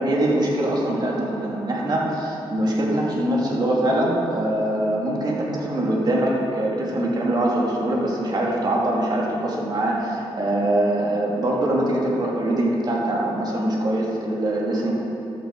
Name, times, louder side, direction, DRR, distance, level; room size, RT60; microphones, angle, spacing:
voice 1, 0.0-14.9, right 1 dB, 45° right, -3 dB, 3.0 m, -23 dB
15.0 x 12.0 x 4.9 m, 2.9 s
wide cardioid pair, 120°, 10 cm